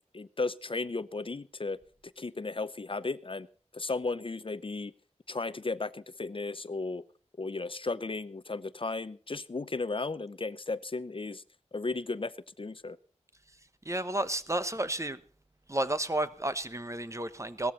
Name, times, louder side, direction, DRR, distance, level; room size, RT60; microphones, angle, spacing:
voice 1, 0.1-1.8 2.2-3.5 3.7-4.9 5.3-7.0 7.4-11.4 11.7-13.0, left 3 dB, 45° left, 0.7 m, -35 dB
voice 2, 13.8-15.2 15.7-17.7, right 1 dB, 25° right, 1.1 m, -31 dB
17.5 x 13.5 x 4.1 m
wide cardioid pair, 65°, 12 cm